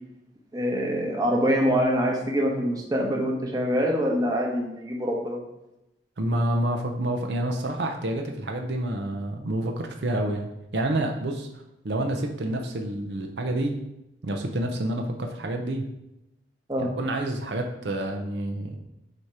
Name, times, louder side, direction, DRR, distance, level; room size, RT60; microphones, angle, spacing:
voice 1, 0.5-5.4 16.7-16.9, equal, 20° right, -1 dB, 1.0 m, -25 dB
voice 2, 6.2-11.5 11.8-13.8 14.2-15.9 16.8-18.8, right 1 dB, 70° right, 3 dB, 0.7 m, -28 dB
8.0 x 2.9 x 4.7 m, 0.89 s
head